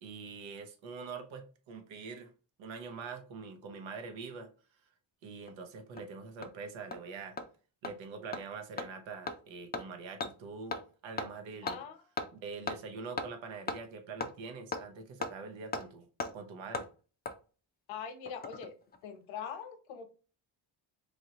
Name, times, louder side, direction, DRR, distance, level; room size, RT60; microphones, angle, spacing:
voice 1, 0.0-2.3 2.6-4.5 5.2-7.4 7.8-10.8 11.0-11.8 12.3-16.1 16.3-16.9, right 4 dB, 75° right, 0.8 m, -44 dB
Hammer, 5.5-5.6 6.0-6.1 6.4-6.5 6.9-7.0 7.4-7.5 7.8-7.9 8.3-8.4 8.8-8.9 9.3-9.4 9.7-9.8 10.2-10.3 10.7-10.8 11.2-11.3 11.7-11.8 12.2-12.3 12.7-12.8 13.2-13.3 13.7-13.8 14.2-14.3 14.7-14.8 15.2-15.3 15.7-15.8 16.2-16.3 16.7-16.9 17.2-17.3 18.3-18.7 18.9-19.0, left 3 dB, 25° left, 0.3 m, -36 dB
voice 2, 11.6-12.0 17.9-18.7 19.0-20.1, left 7 dB, 90° left, 0.8 m, -42 dB
3.2 x 2.6 x 2.8 m
cardioid pair, 95°, 46 cm